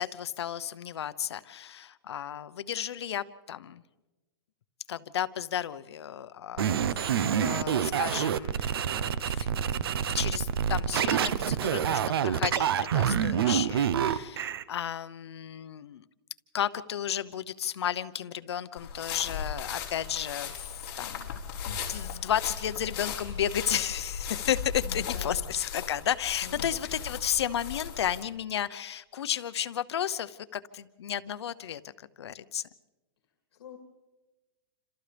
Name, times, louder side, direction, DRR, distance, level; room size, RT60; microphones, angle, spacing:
voice 1, 0.0-3.8 4.9-6.7 7.0-9.5 10.1-16.0 16.5-21.4 21.6-31.8 32.2-32.7, left 10 dB, 90° left, 14 dB, 0.9 m, -33 dB
sound 1, 6.6-14.6, right 8 dB, 65° right, 0.8 m, -27 dB
sound 2, 18.8-28.2, left 7 dB, 50° left, 4.4 m, -37 dB
voice 2, 24.8-25.5 26.4-26.7 33.5-33.8, left 7 dB, 75° left, 2 dB, 2.8 m, -46 dB
29.5 x 26.5 x 3.4 m, 1.2 s
supercardioid pair, 175°, 13 cm